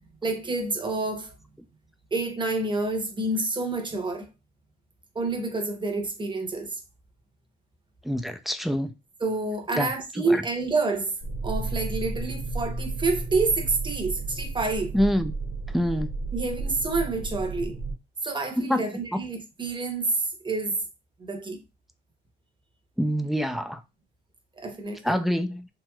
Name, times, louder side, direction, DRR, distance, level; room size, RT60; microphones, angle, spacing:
voice 1, 0.2-1.3 2.1-4.3 5.1-6.8 9.2-11.1 11.4-15.0 16.3-17.8 18.2-20.8 21.2-21.6 24.6-25.2, right 3 dB, 25° right, 0.8 m, -28 dB
voice 2, 8.0-8.9 9.8-9.9 10.2-10.4 14.9-15.3 15.7-16.1 18.6-19.2 23.0-23.8 25.0-25.7, equal, ahead, 0.3 m, -26 dB
sound 1, 11.2-17.9, right 3 dB, 50° right, 1.0 m, -32 dB
3.1 x 2.8 x 2.2 m
cardioid pair, 90°, 20 cm